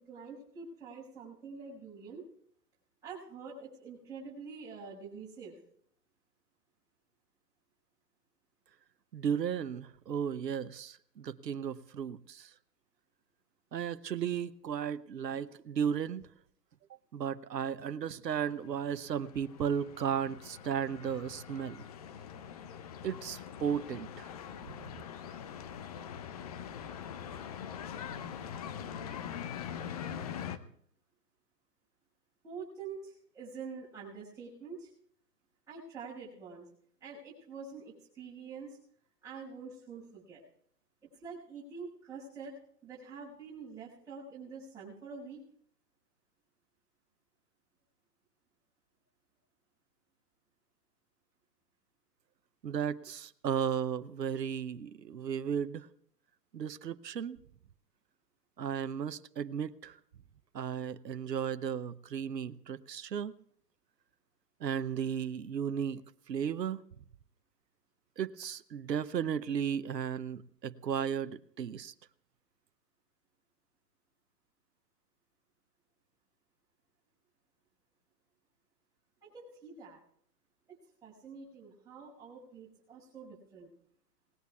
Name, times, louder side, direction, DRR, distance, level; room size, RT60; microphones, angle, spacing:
voice 1, 0.0-2.2 3.0-5.6 32.4-34.9 35.7-36.7 37.0-38.8 39.2-40.4 41.0-45.4 79.2-80.0 80.7-83.7, right 5 dB, 5° right, -8 dB, 5.8 m, -46 dB
voice 2, 9.1-12.5 13.7-16.3 17.1-21.8 23.0-24.3 52.6-55.9 56.5-57.4 58.6-60.0 60.5-63.3 64.6-66.8 68.2-71.9, right 8 dB, 80° right, 13 dB, 0.9 m, -35 dB
sound 1, 18.5-30.6, left 8 dB, 25° left, 0.5 m, -43 dB
27.5 x 19.5 x 2.4 m, 0.63 s
hypercardioid pair, 125°, 49 cm